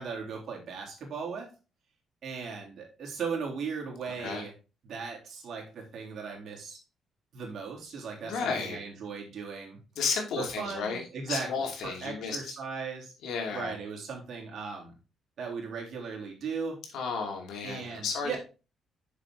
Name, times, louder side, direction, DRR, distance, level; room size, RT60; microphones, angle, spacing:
voice 1, 0.0-1.5 2.2-4.5 4.8-6.8 7.3-9.8 10.4-13.1 13.5-14.9 15.4-16.8 17.6-18.4, right 5 dB, 65° right, -1 dB, 3.3 m, -37 dB
voice 2, 8.2-8.8 10.0-11.0 11.3-12.4 13.2-13.7 16.9-18.4, left 5 dB, 80° left, 2 dB, 2.7 m, -32 dB
7.4 x 6.3 x 3.8 m, 0.32 s
cardioid pair, 90°, 0 cm